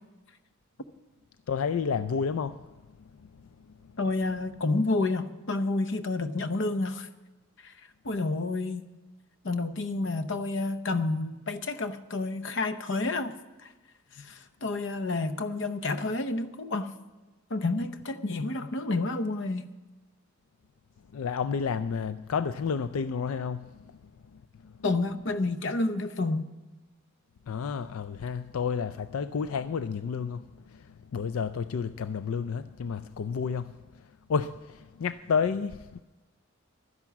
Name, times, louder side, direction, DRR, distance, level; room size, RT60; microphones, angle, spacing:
voice 1, 1.5-2.6 21.1-23.7 24.6-24.7 27.5-30.4 31.1-33.7 34.3-36.0, left 6 dB, 85° left, 0.4 m, -30 dB
voice 2, 4.0-7.1 7.6-7.7 8.0-8.9 9.4-13.3 13.6-13.7 14.1-16.9 17.5-19.7 24.8-26.5, left 2 dB, 60° left, 0.8 m, -29 dB
12.0 x 10.5 x 7.2 m
head